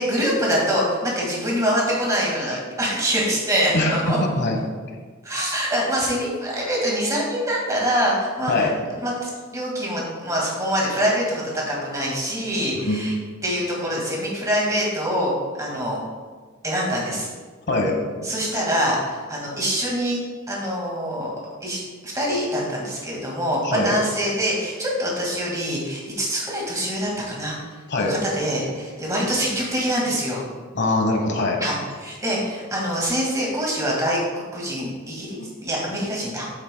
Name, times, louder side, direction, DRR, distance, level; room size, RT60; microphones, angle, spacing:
voice 1, 0.0-4.2 5.2-8.7 9.0-13.1 13.4-15.3 15.6-16.0 16.6-17.3 18.2-20.2 20.5-21.3 21.6-27.6 28.1-30.4 31.6-31.7 32.0-35.4 35.6-36.5, equal, 15° right, -4 dB, 2.0 m, -24 dB
voice 2, 3.7-4.6 8.5-8.7 12.7-13.0 17.7-18.0 18.5-18.6 23.6-24.0 27.9-28.2 30.7-31.6 35.4-35.5, left 2 dB, 55° left, 2 dB, 1.2 m, -22 dB
8.1 x 7.5 x 2.3 m, 1.4 s
head